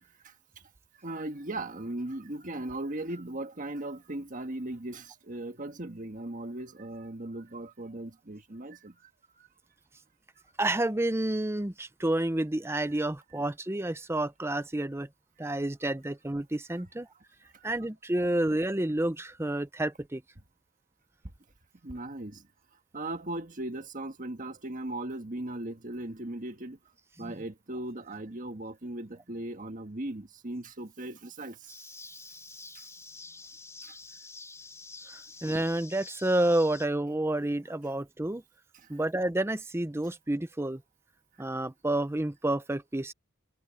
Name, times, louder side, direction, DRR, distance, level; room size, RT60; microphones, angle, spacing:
voice 1, 1.0-8.9 9.4-9.5 15.4-15.5 17.5-17.6 21.8-22.4 22.9-26.8 27.2-31.7 33.8-33.9, right 1 dB, 40° right, 1.5 m, -38 dB
voice 2, 10.6-15.1 15.4-17.1 17.6-20.2 27.2-27.4 35.1-38.4 38.9-40.8 41.4-43.1, right 1 dB, 10° right, 0.6 m, -29 dB
sound 1, 31.7-36.9, left 3 dB, 15° left, 3.6 m, -47 dB
head